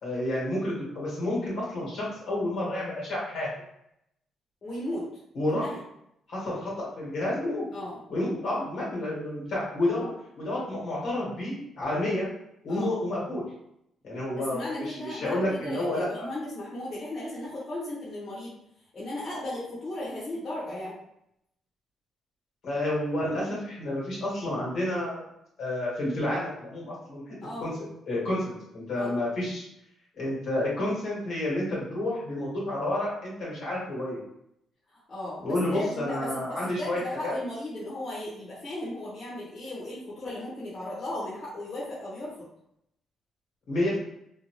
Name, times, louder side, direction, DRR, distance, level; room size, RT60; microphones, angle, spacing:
voice 1, 0.0-3.5 5.3-5.7 6.3-7.7 8.1-10.1 10.4-12.3 12.6-13.4 14.0-16.3 22.6-25.2 25.6-27.7 28.1-29.6 30.2-34.2 35.4-37.3 43.7-44.0, left 1 dB, 75° left, -6 dB, 1.5 m, -30 dB
voice 2, 4.6-5.1 5.4-5.8 7.7-8.0 10.0-10.1 12.7-12.9 14.4-18.6 18.9-21.0 27.4-27.7 29.0-29.2 34.9-42.5, left 1 dB, 50° left, -8 dB, 1.0 m, -36 dB
2.7 x 2.2 x 3.0 m, 0.78 s
cardioid pair, 90°, 0 cm